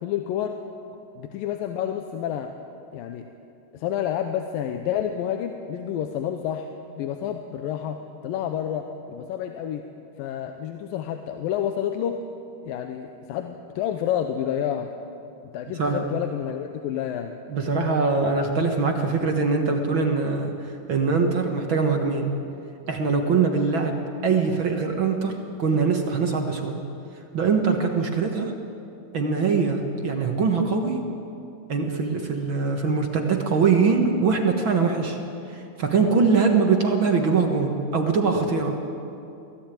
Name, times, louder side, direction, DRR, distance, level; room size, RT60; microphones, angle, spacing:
voice 1, 0.0-0.6 1.2-2.5 2.9-3.3 3.7-6.7 7.0-9.8 10.2-12.2 12.7-14.9 15.5-17.4, left 10 dB, 90° left, 6 dB, 2.6 m, -29 dB
voice 2, 17.5-22.3 22.9-26.8 27.3-28.5 29.1-31.0 31.7-35.2 35.5-38.8, right 4 dB, 55° right, 3 dB, 1.5 m, -23 dB
23.5 x 16.5 x 9.2 m, 2.8 s
omnidirectional pair, 3.9 m